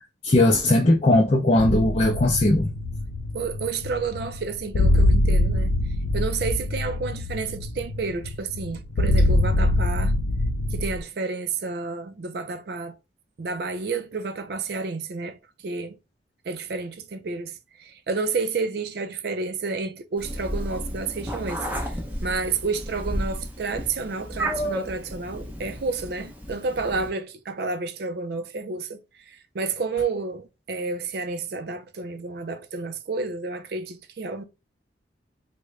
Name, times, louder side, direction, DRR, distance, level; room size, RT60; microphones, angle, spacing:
voice 1, 0.2-2.7, left 1 dB, 35° left, 0.5 m, -19 dB
sound 1, 1.6-11.0, left 1 dB, 90° left, 0.5 m, -23 dB
voice 2, 3.3-5.7 6.1-10.1 10.7-13.0 13.4-16.0 16.5-17.5 17.8-34.4, right 4 dB, 60° right, 0.4 m, -30 dB
Meow, 20.2-27.1, equal, 10° right, 0.6 m, -32 dB
3.6 x 2.1 x 3.1 m
head